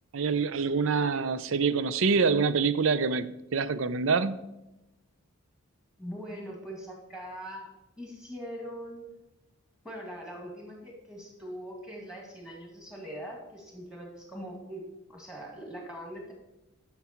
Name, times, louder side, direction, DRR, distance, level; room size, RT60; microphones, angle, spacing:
voice 1, 0.1-4.4, right 5 dB, 60° right, 15 dB, 0.4 m, -26 dB
voice 2, 6.0-7.7 8.0-9.1 9.8-16.3, equal, 5° right, 0 dB, 2.1 m, -42 dB
11.0 x 5.9 x 4.4 m, 1.0 s
head